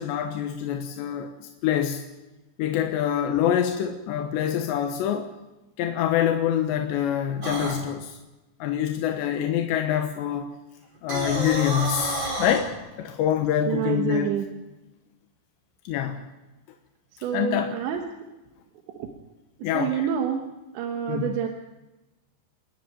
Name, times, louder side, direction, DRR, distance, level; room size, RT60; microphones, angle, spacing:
voice 1, 0.0-2.0 2.6-5.3 5.8-8.2 8.6-10.5 11.0-14.4 15.8-16.2 17.3-17.8 19.6-20.1 21.1-21.3, left 10 dB, 85° left, 5 dB, 3.4 m, -26 dB
sound 1, 7.4-7.8 11.0-12.6, right 1 dB, 25° right, 5.8 m, -29 dB
voice 2, 13.7-14.5 17.1-18.3 19.0-19.1 19.6-20.5 20.7-21.5, right 9 dB, 90° right, 3 dB, 3.6 m, -28 dB
29.5 x 10.5 x 9.4 m, 1.1 s
omnidirectional pair, 5.0 m